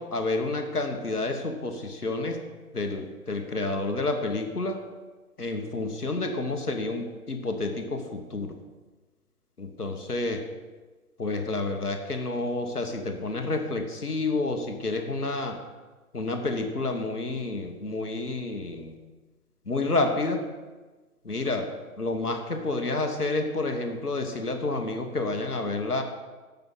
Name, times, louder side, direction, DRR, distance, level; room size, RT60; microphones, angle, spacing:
voice 1, 0.0-2.4 2.7-4.8 5.4-8.6 9.6-10.5 11.2-15.6 16.1-19.0 19.7-20.5 21.2-26.0, left 2 dB, 85° left, 6 dB, 1.2 m, -29 dB
10.5 x 7.0 x 3.9 m, 1.3 s
figure-of-eight pair, 135°, 45 cm